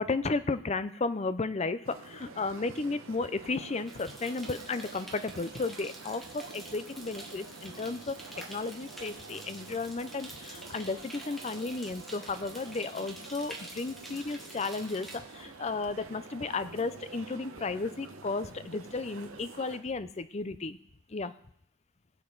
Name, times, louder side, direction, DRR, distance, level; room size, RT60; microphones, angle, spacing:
voice 1, 0.0-20.8 21.1-21.3, left 3 dB, 30° left, 13 dB, 0.5 m, -34 dB
sound 1, 1.8-19.8, right 3 dB, 80° right, 1.3 m, -48 dB
sound 2, 3.9-15.2, right 1 dB, ahead, 1.8 m, -48 dB
20.5 x 7.6 x 3.9 m, 0.70 s
head